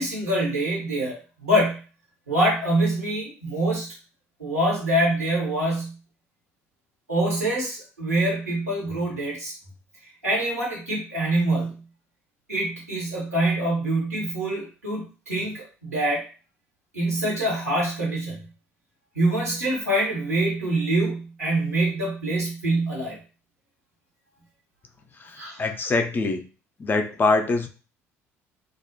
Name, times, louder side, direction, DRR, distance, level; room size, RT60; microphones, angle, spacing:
voice 1, 0.0-1.8 2.3-3.9 4.4-5.9 7.1-9.5 10.2-11.8 12.5-16.2 16.9-18.4 19.1-23.2 25.4-25.6, right 1 dB, 85° right, -3 dB, 1.0 m, -25 dB
voice 2, 25.1-26.5 26.8-27.7, left 3 dB, 25° left, 5 dB, 0.4 m, -24 dB
2.3 x 2.0 x 2.8 m, 0.35 s
figure-of-eight pair, 55°, 8 cm